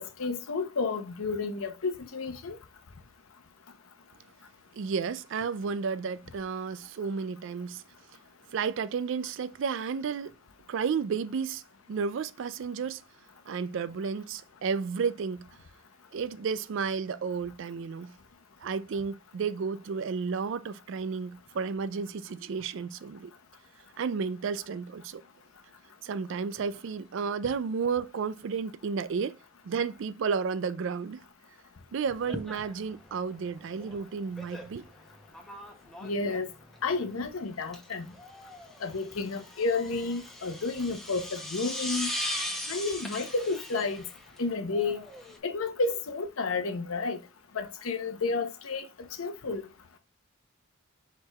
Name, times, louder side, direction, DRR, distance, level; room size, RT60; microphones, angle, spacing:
voice 1, 0.0-2.6 36.0-36.5 36.8-38.1 38.8-42.1 42.7-44.0 44.4-45.0 45.4-47.2 47.5-48.8 49.2-49.7, left 3 dB, 80° left, 0.8 m, -31 dB
voice 2, 4.7-7.8 8.5-10.3 10.7-11.6 11.9-13.0 13.5-15.5 16.1-18.1 18.6-23.3 24.0-25.2 26.0-29.4 29.6-31.2 31.9-34.9, right 5 dB, 60° right, 0.3 m, -32 dB
sound 1, 32.1-45.4, left 1 dB, ahead, 0.8 m, -40 dB
4.7 x 4.5 x 2.3 m
head